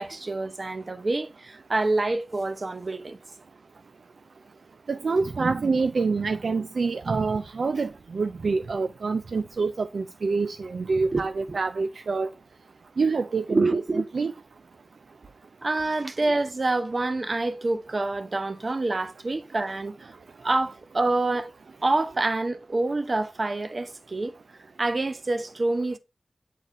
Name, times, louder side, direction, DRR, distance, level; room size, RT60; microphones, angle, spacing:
voice 1, 0.0-3.2 11.1-11.6 13.5-14.1 15.6-20.1 20.4-21.5 21.8-24.4 24.8-26.0, right 2 dB, 55° right, 0.8 m, -27 dB
voice 2, 4.9-12.3 13.0-13.6 14.1-14.3, right 4 dB, 85° right, 0.3 m, -26 dB
7.5 x 4.0 x 3.6 m
cardioid pair, 45°, 0 cm